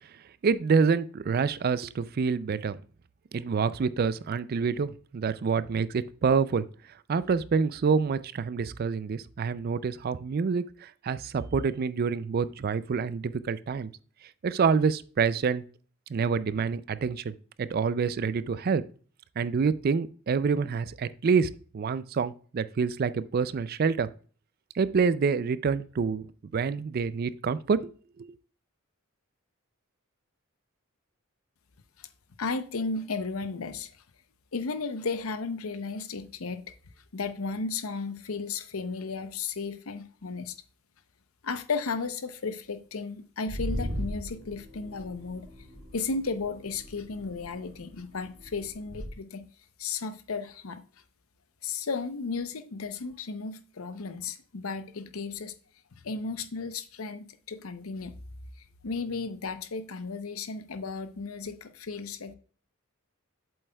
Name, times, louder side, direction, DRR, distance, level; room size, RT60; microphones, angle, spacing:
voice 1, 0.4-2.8 3.3-6.6 7.1-13.9 14.4-15.6 16.1-18.8 19.4-24.1 24.7-26.3 26.5-27.9 28.2-28.3, right 5 dB, 45° right, 0.3 m, -27 dB
voice 2, 32.4-33.9 34.5-36.6 37.1-40.5 41.4-45.5 45.9-49.5 49.8-50.8 51.6-55.5 56.0-58.1 58.8-62.4, left 4 dB, 90° left, 0.7 m, -34 dB
sound 1, 43.5-49.1, equal, 70° right, 3.3 m, -39 dB
7.8 x 7.7 x 2.2 m
head